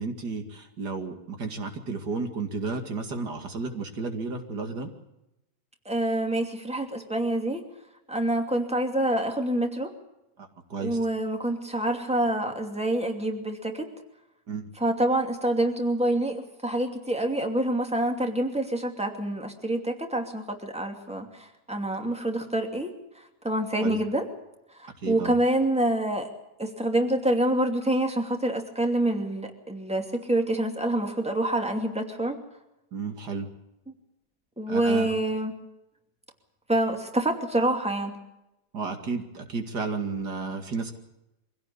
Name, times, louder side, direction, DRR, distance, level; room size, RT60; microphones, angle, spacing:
voice 1, 0.0-4.9 10.4-11.0 14.5-14.7 22.0-22.1 23.8-24.0 25.0-25.3 32.9-33.5 34.7-35.1 38.7-40.9, right 4 dB, 90° right, 5 dB, 2.9 m, -32 dB
voice 2, 5.8-7.6 8.1-9.9 10.8-13.9 14.8-22.9 23.4-24.3 24.7-26.3 26.6-32.4 34.6-35.5 36.7-38.2, right 1 dB, 5° right, 4 dB, 2.6 m, -26 dB
24.0 x 16.5 x 8.5 m, 0.90 s
omnidirectional pair, 1.7 m